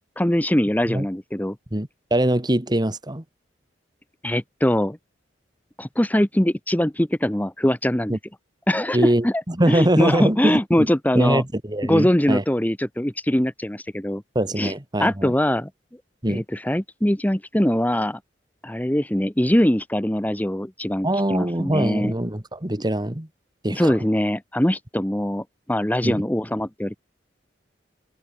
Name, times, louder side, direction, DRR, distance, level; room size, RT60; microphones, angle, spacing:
voice 1, 0.0-1.6 4.2-5.0 5.8-8.2 8.7-9.4 9.7-11.4 11.9-14.2 14.6-14.7 15.0-15.7 16.3-18.2 18.6-22.1 23.7-27.0, equal, 10° left, 1.1 m, -22 dB
voice 2, 1.7-3.2 8.1-8.2 8.9-10.9 11.1-12.4 14.4-15.3 16.2-16.4 21.0-23.3 23.6-24.0 26.0-26.2, right 1 dB, 25° right, 2.0 m, -23 dB
open air
head